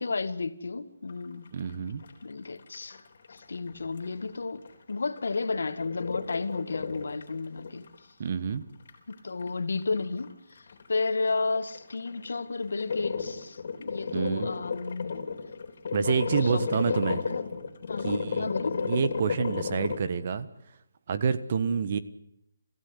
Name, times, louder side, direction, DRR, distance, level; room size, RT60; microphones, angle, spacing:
voice 1, 0.0-1.5 2.2-3.0 3.3-4.6 4.9-7.9 9.1-10.6 10.9-15.2 16.0-17.5 17.9-18.8, left 3 dB, 80° left, 1.9 m, -33 dB
sound 1, 1.1-2.2 2.5-4.3 4.6-8.0 8.3-8.4 8.9-9.1 9.4-9.5 9.8-10.3 10.6-20.0, left 5 dB, 50° left, 4.0 m, -34 dB
voice 2, 1.5-2.0 8.2-8.6 14.1-14.5 15.9-17.2 18.0-18.5 18.8-20.5 21.1-22.0, right 6 dB, 35° right, 1.4 m, -28 dB
27.5 x 15.5 x 9.7 m
hypercardioid pair, 170°, 0 cm